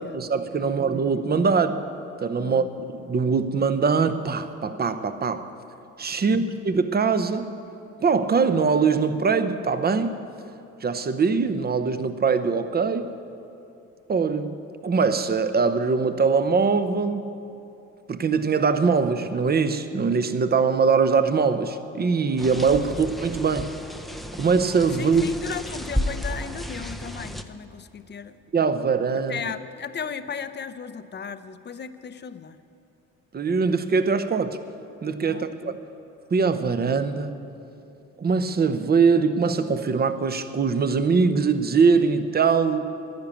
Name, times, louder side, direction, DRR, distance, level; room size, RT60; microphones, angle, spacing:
voice 1, 0.0-1.8 2.2-2.7 2.9-5.5 6.0-7.5 8.0-10.1 10.8-13.1 14.1-17.2 18.1-23.7 24.4-25.2 28.5-29.4 33.3-34.6 35.0-35.8 36.3-37.4 38.2-42.8, right 5 dB, 30° right, 0.8 m, -22 dB
voice 2, 6.1-6.6 22.9-23.0 24.9-28.4 29.3-32.6 35.2-35.8, left 6 dB, 35° left, 0.7 m, -36 dB
sound 1, 22.4-27.4, equal, ahead, 0.6 m, -32 dB
10.5 x 10.5 x 8.5 m
cardioid pair, 90°, 30 cm